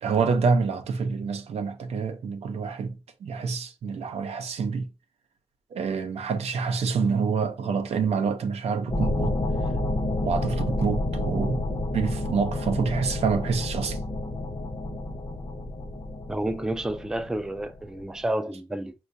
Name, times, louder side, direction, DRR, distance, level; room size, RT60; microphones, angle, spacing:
voice 1, 0.0-4.9 5.7-9.4 10.2-14.0, right 5 dB, 85° right, 0.5 m, -27 dB
sound 1, 8.9-18.0, left 2 dB, 40° left, 0.7 m, -30 dB
voice 2, 16.3-18.9, right 1 dB, 5° right, 0.3 m, -30 dB
4.4 x 2.2 x 2.5 m
cardioid pair, 75°, 10 cm